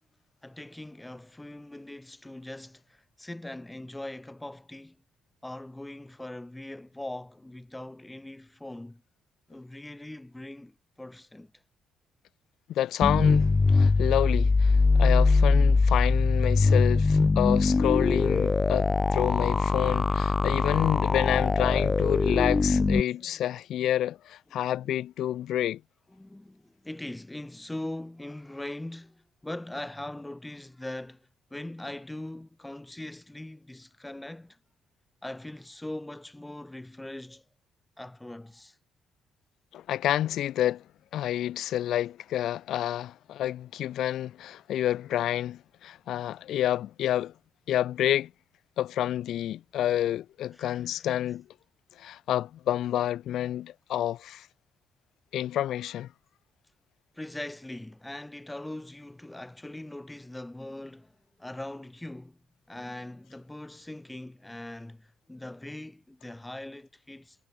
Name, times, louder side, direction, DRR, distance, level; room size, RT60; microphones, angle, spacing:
voice 1, 0.4-5.0 5.4-9.0 9.5-11.5 23.2-23.4 26.1-34.6 35.2-37.4 38.0-38.8 50.6-51.2 57.1-62.4 62.7-67.4, left 1 dB, 10° left, 5.8 m, -41 dB
voice 2, 12.7-25.8 39.7-40.8 41.1-47.3 47.7-48.3 48.8-51.4 52.0-54.5 55.3-56.1, left 12 dB, 75° left, 1.1 m, -29 dB
sound 1, 13.0-23.0, left 3 dB, 25° left, 0.8 m, -22 dB
cardioid pair, 90°, 0 cm